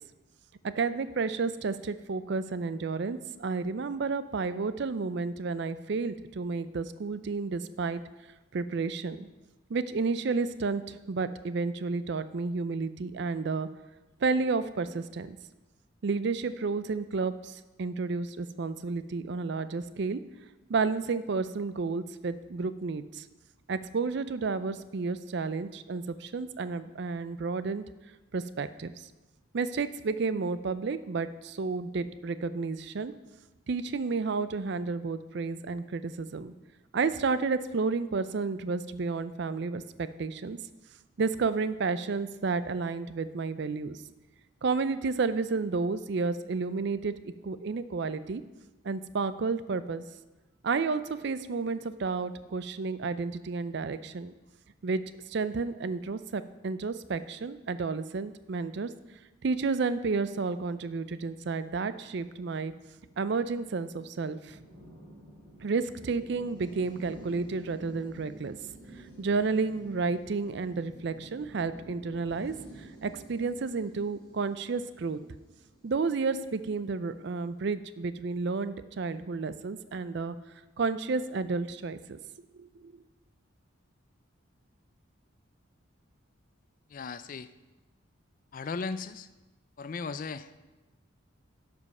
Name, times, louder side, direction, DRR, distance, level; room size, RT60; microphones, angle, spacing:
voice 1, 0.6-8.0 8.5-9.3 9.7-13.7 14.2-15.4 16.0-20.2 20.7-23.3 23.7-27.8 28.3-29.1 29.5-33.1 33.7-36.5 36.9-40.6 41.2-44.0 44.6-48.4 48.8-50.0 50.6-54.3 54.8-58.9 59.4-62.7 63.2-64.6 65.6-68.6 69.2-75.2 75.8-80.4 80.8-82.2 82.5-82.9, right 4 dB, 55° right, 13 dB, 0.4 m, -31 dB
sound 1, 62.7-76.6, right 1 dB, 5° left, 3.6 m, -51 dB
voice 2, 86.9-87.5 88.5-89.3 89.8-90.6, left 4 dB, 40° left, 13 dB, 0.3 m, -36 dB
12.0 x 5.3 x 5.4 m, 1.1 s
head